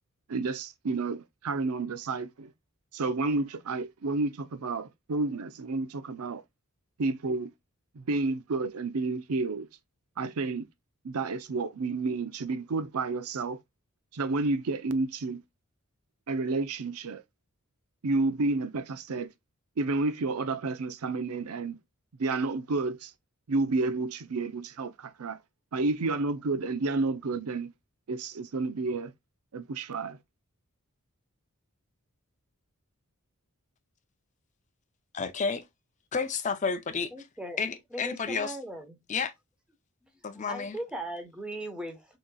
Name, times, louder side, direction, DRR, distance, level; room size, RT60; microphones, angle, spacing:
voice 1, 0.3-2.5 2.9-6.4 7.0-7.5 7.9-9.7 10.2-10.7 11.0-13.6 14.1-15.4 16.3-17.2 18.0-19.3 19.8-21.8 22.2-23.1 23.5-25.4 25.7-27.7 28.1-29.1 29.5-30.2, right 3 dB, 85° right, 0.6 m, -30 dB
voice 2, 35.1-35.6 36.1-37.1 37.6-38.6 39.1-39.3 40.2-40.8, left 5 dB, 35° left, 0.5 m, -31 dB
voice 3, 37.1-37.6 37.9-39.0 40.5-42.1, right 1 dB, 5° right, 1.0 m, -38 dB
6.3 x 2.9 x 2.2 m
head